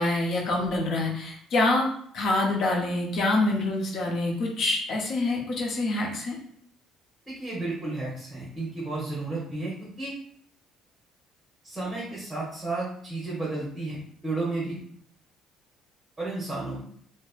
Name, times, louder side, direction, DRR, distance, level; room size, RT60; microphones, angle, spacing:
voice 1, 0.0-1.9 2.1-6.4, left 2 dB, 60° left, 0 dB, 0.7 m, -26 dB
voice 2, 7.3-10.2 11.6-14.0 14.2-14.8 16.2-16.8, right 2 dB, 10° right, -6 dB, 1.0 m, -32 dB
3.1 x 2.1 x 2.4 m, 0.63 s
cardioid pair, 95°, 0 cm